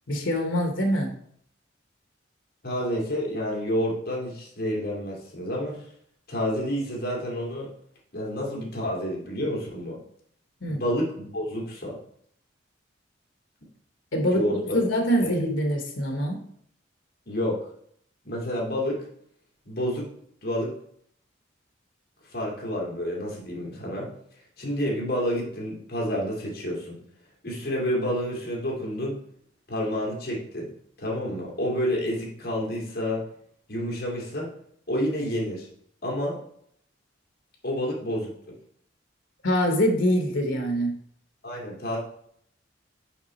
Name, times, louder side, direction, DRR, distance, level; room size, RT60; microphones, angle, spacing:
voice 1, 0.1-1.1 10.6-10.8 14.1-16.4 39.4-40.9, equal, 70° left, 3 dB, 1.1 m, -24 dB
voice 2, 2.6-5.8 6.3-7.7 8.1-10.0 10.7-12.0 14.3-14.8 15.2-15.3 17.3-17.6 18.2-19.0 19.7-20.1 20.4-20.7 22.3-24.1 24.6-27.0 27.4-29.2 29.7-30.7 31.0-33.2 33.7-34.5 34.9-35.7 36.0-36.4 37.6-38.5 41.4-42.0, equal, 50° left, -2 dB, 2.2 m, -29 dB
5.8 x 4.9 x 4.3 m, 0.65 s
head